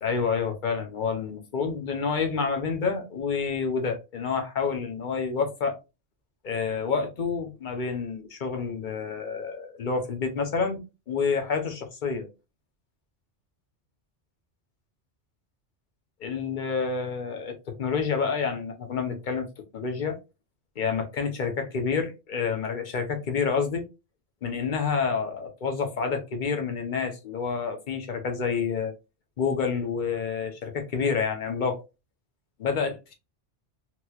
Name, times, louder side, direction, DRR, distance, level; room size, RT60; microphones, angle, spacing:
voice 1, 0.0-5.7 6.4-10.8 11.1-12.3 16.2-19.5 19.7-20.2 20.8-23.8 24.4-28.9 29.4-31.8 32.6-33.1, left 5 dB, 50° left, 0.9 m, -28 dB
3.0 x 3.0 x 2.3 m
omnidirectional pair, 1.2 m